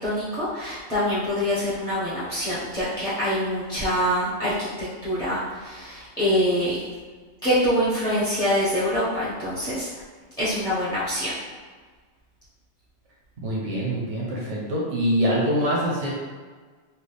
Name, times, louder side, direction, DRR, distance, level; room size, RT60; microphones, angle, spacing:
voice 1, 0.0-6.8 7.4-9.9 10.4-11.3, equal, 5° left, -12 dB, 1.1 m, -25 dB
voice 2, 13.4-16.2, equal, 80° right, -5 dB, 1.2 m, -24 dB
4.6 x 2.5 x 3.3 m, 1.5 s
omnidirectional pair, 1.2 m